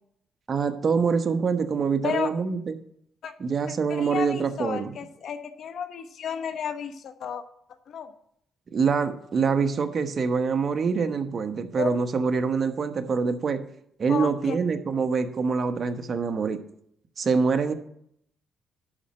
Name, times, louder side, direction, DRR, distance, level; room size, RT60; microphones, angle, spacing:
voice 1, 0.5-2.8 3.4-4.9 8.7-13.6 14.0-16.6 17.2-17.7, right 5 dB, 45° right, 8 dB, 1.1 m, -25 dB
voice 2, 3.9-7.4 7.9-8.1 11.8-11.9 14.1-14.6, left 7 dB, 65° left, 9 dB, 1.1 m, -32 dB
11.5 x 4.3 x 7.7 m, 0.69 s
cardioid pair, 90°, 0 cm